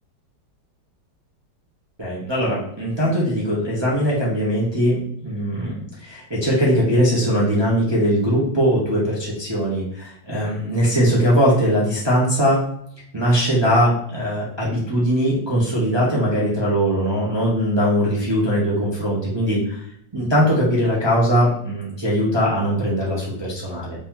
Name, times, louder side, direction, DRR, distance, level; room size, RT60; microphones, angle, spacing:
voice 1, 2.0-12.6 13.1-19.8 20.1-24.0, equal, 40° right, -6 dB, 0.3 m, -20 dB
3.3 x 2.9 x 3.6 m, 0.69 s
omnidirectional pair, 2.0 m